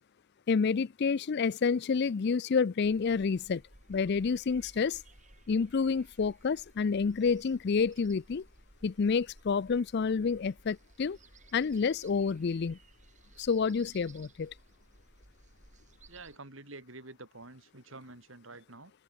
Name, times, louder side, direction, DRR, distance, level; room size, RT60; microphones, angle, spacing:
voice 1, 0.5-3.6 3.9-5.0 5.5-8.4 8.8-11.2 11.5-12.8 13.4-14.5, left 5 dB, 50° left, 0.4 m, -29 dB
sound 1, 2.8-16.4, right 2 dB, 35° right, 3.7 m, -58 dB
voice 2, 16.1-18.9, right 2 dB, 60° right, 3.0 m, -48 dB
head